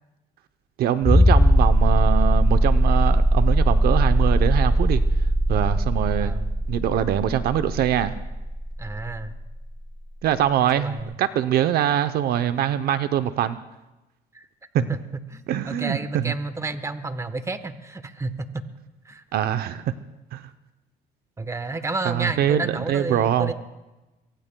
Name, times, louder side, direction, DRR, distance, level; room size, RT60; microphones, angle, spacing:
voice 1, 0.8-5.0 5.5-6.3 6.7-8.1 10.2-13.6 15.5-16.3 19.3-19.9 20.3-20.4 22.1-23.5, right 10 dB, 65° right, 11 dB, 0.7 m, -23 dB
sound 1, 1.0-9.5 11.0-11.1, equal, ahead, 0.6 m, -19 dB
voice 2, 6.2-6.5 8.8-9.3 10.8-11.2 14.3-14.5 14.8-15.0 15.3-18.5 19.0-19.2 21.4-23.5, right 3 dB, 15° right, 10 dB, 1.1 m, -31 dB
24.0 x 22.5 x 2.3 m, 1.0 s
cardioid pair, 110°, 17 cm